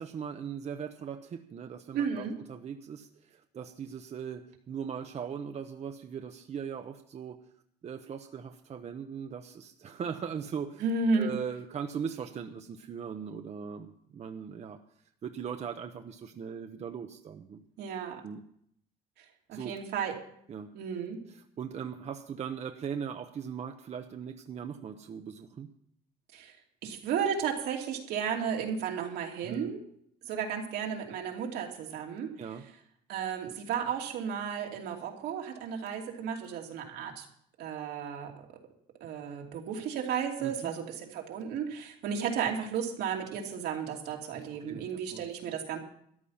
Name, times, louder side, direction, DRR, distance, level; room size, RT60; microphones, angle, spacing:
voice 1, 0.0-7.4 7.8-10.8 11.2-14.8 15.2-17.6 18.2-18.4 19.5-19.7 20.5-20.7 21.3-25.7 29.4-29.7 32.4-32.7 40.4-40.7 44.7-44.8 45.1-45.3, right 7 dB, 40° right, 6 dB, 0.9 m, -39 dB
voice 2, 1.9-2.4 10.8-11.4 17.8-18.2 19.5-20.1 20.7-21.2 26.3-26.5 26.8-29.8 30.2-32.3 33.1-37.3 37.6-38.3 39.0-45.8, right 6 dB, 80° right, 1 dB, 2.7 m, -33 dB
14.0 x 10.0 x 5.7 m, 0.68 s
cardioid pair, 110°, 17 cm